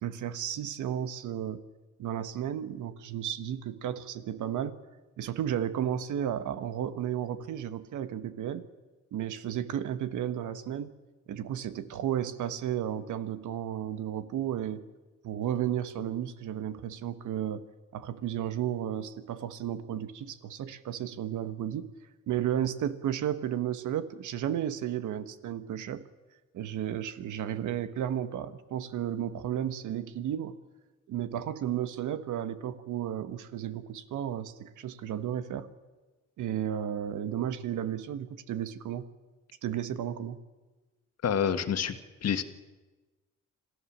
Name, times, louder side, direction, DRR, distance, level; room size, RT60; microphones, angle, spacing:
voice 1, 0.0-1.6 2.0-4.8 5.2-8.7 9.1-11.0 11.3-14.8 15.2-17.6 17.9-21.9 22.3-26.0 26.5-30.6 31.1-35.7 36.4-39.1 39.6-40.4, right 10 dB, 80° right, 11 dB, 1.4 m, -33 dB
voice 2, 41.2-42.0 42.2-42.4, left 8 dB, 55° left, 9 dB, 1.7 m, -27 dB
26.5 x 15.0 x 7.4 m, 1.2 s
cardioid pair, 90°, 30 cm